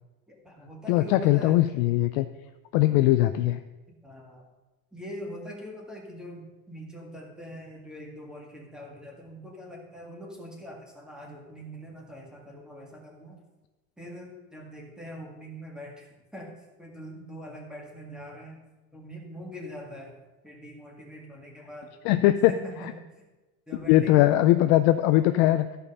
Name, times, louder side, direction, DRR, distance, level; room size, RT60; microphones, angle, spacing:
voice 1, 0.3-1.6 4.0-4.5 4.9-13.4 14.0-18.6 18.9-20.2 20.4-21.9 22.5-23.0 23.7-24.3, equal, ahead, -1 dB, 1.9 m, -43 dB
voice 2, 0.9-2.3 2.7-3.6 22.0-22.5 23.9-25.7, left 15 dB, 45° left, 10 dB, 0.4 m, -20 dB
13.5 x 5.2 x 5.5 m, 1.1 s
supercardioid pair, 135°, 43 cm